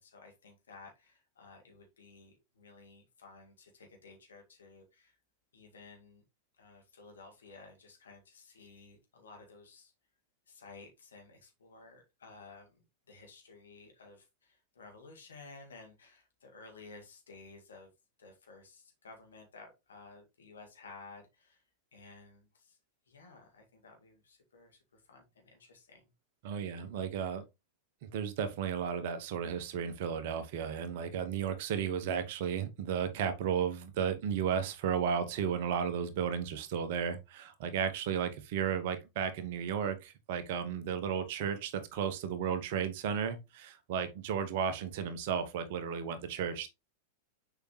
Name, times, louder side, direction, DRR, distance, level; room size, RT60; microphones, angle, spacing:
voice 1, 0.0-5.2 5.5-6.2 6.6-9.9 10.5-17.9 18.2-21.6 21.9-22.8 23.1-26.1, left 3 dB, 70° left, 2.2 m, -54 dB
voice 2, 26.4-27.4 28.0-46.7, right 7 dB, 50° right, 1.1 m, -34 dB
6.9 x 5.0 x 3.2 m
figure-of-eight pair, 90°, 0 cm